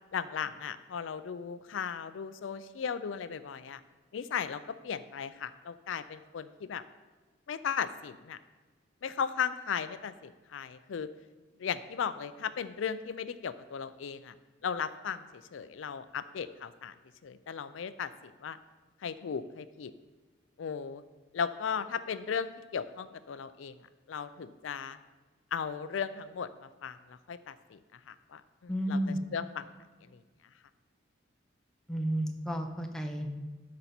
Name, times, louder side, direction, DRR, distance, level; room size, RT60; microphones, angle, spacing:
voice 1, 0.1-3.8 4.1-6.8 7.5-8.4 9.0-11.1 11.6-14.3 14.6-16.9 17.2-18.6 19.0-19.9 20.6-21.0 21.3-23.8 24.1-25.0 25.5-29.0 29.3-29.6, left 7 dB, 80° left, 14 dB, 0.4 m, -36 dB
voice 2, 28.7-29.2 31.9-33.4, equal, 5° left, 3 dB, 0.7 m, -32 dB
12.5 x 5.2 x 4.4 m, 1.4 s
head